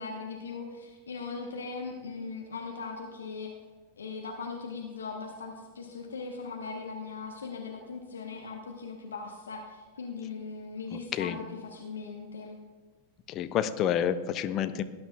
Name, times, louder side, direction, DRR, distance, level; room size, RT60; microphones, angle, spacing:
voice 1, 0.0-3.5 4.0-12.6, left 4 dB, 70° left, 2 dB, 1.1 m, -39 dB
voice 2, 10.9-11.4 13.3-14.8, left 9 dB, 35° left, 11 dB, 0.6 m, -29 dB
18.5 x 10.0 x 2.4 m, 1.4 s
figure-of-eight pair, 90°, 0 cm